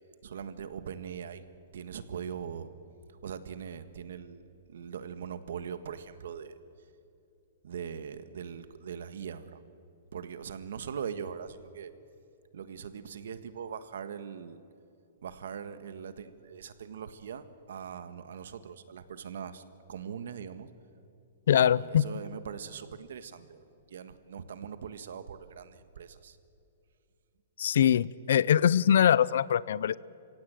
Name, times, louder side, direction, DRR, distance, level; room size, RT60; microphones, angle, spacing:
voice 1, 0.2-1.4 1.7-2.7 3.2-4.4 4.7-6.6 7.6-9.6 10.1-11.9 12.5-14.6 15.2-19.6 19.9-20.7 21.5-26.4, right 7 dB, 65° right, 11 dB, 1.5 m, -41 dB
voice 2, 21.5-22.1 27.6-30.0, left 9 dB, 55° left, 21 dB, 0.5 m, -23 dB
30.0 x 17.0 x 9.1 m, 2.6 s
hypercardioid pair, 180°, 0 cm